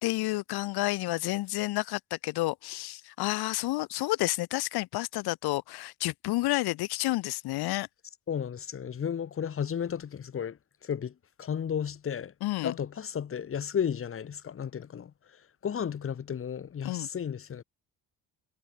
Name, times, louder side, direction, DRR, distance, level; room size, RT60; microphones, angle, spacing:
voice 1, 0.0-7.9 12.4-12.7 16.8-17.1, left 18 dB, 85° left, 2.4 m, -30 dB
voice 2, 8.3-11.1 11.4-12.3 12.6-15.1 15.6-17.6, left 8 dB, 35° left, 3.3 m, -33 dB
cardioid pair, 150°, 37 cm